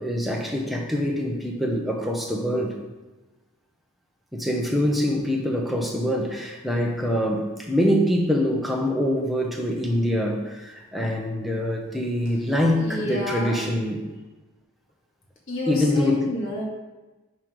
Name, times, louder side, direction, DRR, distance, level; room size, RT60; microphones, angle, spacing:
voice 1, 0.0-2.8 4.3-14.0 15.7-16.3, equal, ahead, -1 dB, 0.8 m, -24 dB
voice 2, 12.7-13.5 15.5-16.6, left 1 dB, 60° left, -4 dB, 2.0 m, -30 dB
5.7 x 4.5 x 6.4 m, 1.2 s
head